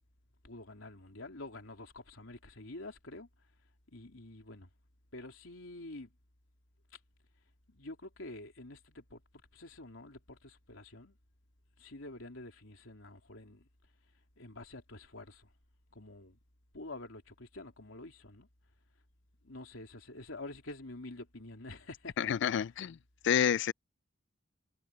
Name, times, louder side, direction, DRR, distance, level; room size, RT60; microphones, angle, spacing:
voice 1, 0.4-3.3 3.9-4.7 5.1-6.1 6.9-7.0 7.7-9.2 9.5-11.2 11.8-13.7 14.4-15.5 15.9-16.4 16.7-18.5 19.4-22.7, left 2 dB, 90° left, 3.2 m, -48 dB
voice 2, 22.2-23.0 23.2-23.7, left 8 dB, 65° left, 0.3 m, -29 dB
head